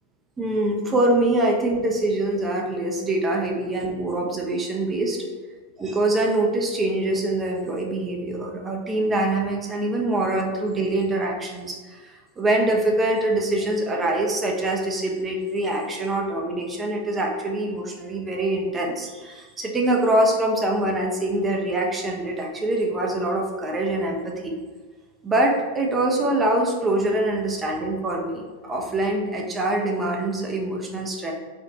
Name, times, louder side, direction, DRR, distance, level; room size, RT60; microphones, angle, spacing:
voice 1, 0.4-5.2 5.8-24.6 25.2-31.3, right 1 dB, 15° right, 0 dB, 0.7 m, -24 dB
4.5 x 2.4 x 2.9 m, 1.4 s
figure-of-eight pair, 90°, 0 cm